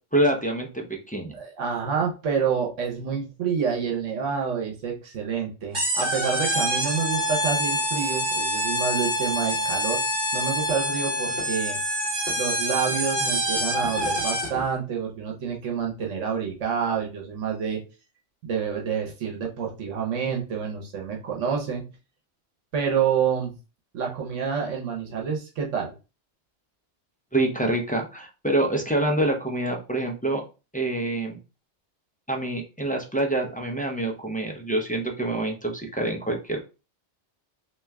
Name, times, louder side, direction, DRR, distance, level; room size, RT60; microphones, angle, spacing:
voice 1, 0.1-1.4 27.3-30.4 30.7-31.4 32.3-36.6, right 1 dB, 10° left, 0 dB, 0.4 m, -26 dB
voice 2, 1.3-10.0 10.3-11.8 12.4-17.8 18.4-21.8 22.7-23.5 23.9-25.9, right 7 dB, 85° right, 1 dB, 1.2 m, -28 dB
sound 1, 5.7-14.7, equal, 40° right, 1.6 m, -26 dB
3.3 x 2.9 x 3.4 m, 0.31 s
omnidirectional pair, 1.2 m